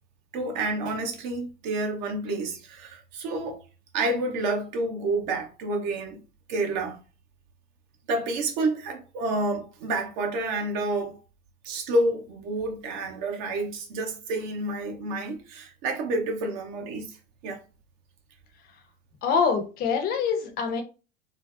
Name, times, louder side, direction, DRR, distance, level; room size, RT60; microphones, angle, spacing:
voice 1, 0.3-3.6 3.9-6.2 6.5-7.0 8.1-11.2 11.6-17.2 17.4-17.6, right 2 dB, 45° right, 0.7 m, -29 dB
voice 2, 19.2-20.8, left 6 dB, 30° left, 0.6 m, -25 dB
2.5 x 2.0 x 2.4 m
figure-of-eight pair, 85°, 32 cm